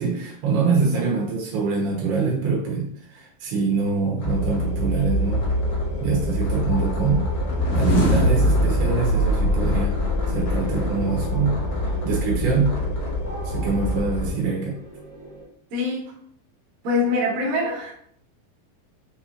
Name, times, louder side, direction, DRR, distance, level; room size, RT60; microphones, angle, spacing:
voice 1, 0.0-5.4 6.0-7.3 7.7-9.9 10.3-11.6 11.9-12.7 13.4-14.8, right 5 dB, 90° right, -3 dB, 3.1 m, -24 dB
sound 1, 4.2-14.3, left 1 dB, 60° left, 1.7 m, -26 dB
sound 2, 6.7-15.4, left 1 dB, 40° left, 0.9 m, -40 dB
sound 3, 7.3-10.6, left 1 dB, 80° left, 1.1 m, -22 dB
voice 2, 15.7-16.1 16.8-17.9, left 2 dB, 65° right, -5 dB, 3.0 m, -24 dB
6.5 x 2.9 x 2.5 m, 0.65 s
omnidirectional pair, 4.4 m